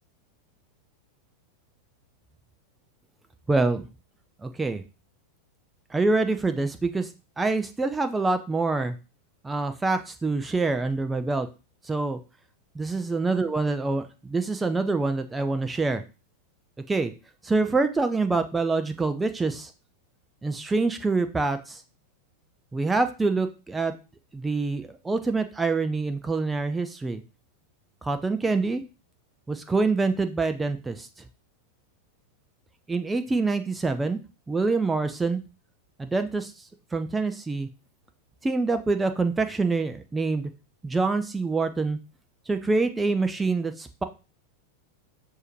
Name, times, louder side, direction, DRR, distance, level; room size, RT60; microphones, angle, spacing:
voice 1, 3.5-3.9 4.4-4.8 5.9-7.1 7.4-8.9 9.4-11.5 11.8-12.2 12.7-16.0 16.9-17.1 17.4-19.7 20.4-21.8 22.7-23.9 24.3-27.2 28.0-28.8 29.5-31.1 32.9-34.2 34.5-35.4 36.0-36.5 36.9-37.7 38.4-40.5 40.8-42.0 42.5-44.0, right 3 dB, 10° right, 8 dB, 0.4 m, -26 dB
6.3 x 2.6 x 3.1 m, 0.31 s
figure-of-eight pair, 90°, 0 cm